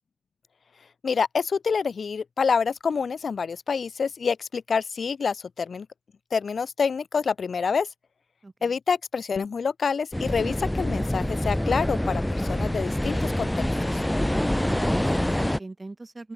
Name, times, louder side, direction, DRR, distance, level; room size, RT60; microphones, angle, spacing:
voice 1, 1.0-5.9 6.3-7.9 8.6-13.5 13.9-14.0, left 5 dB, 75° left, 1.3 m, -27 dB
voice 2, 8.4-8.7 14.7-16.3, right 2 dB, 30° right, 6.5 m, -39 dB
sound 1, 10.1-15.6, left 1 dB, 10° left, 1.6 m, -26 dB
open air
wide cardioid pair, 85°, 0 cm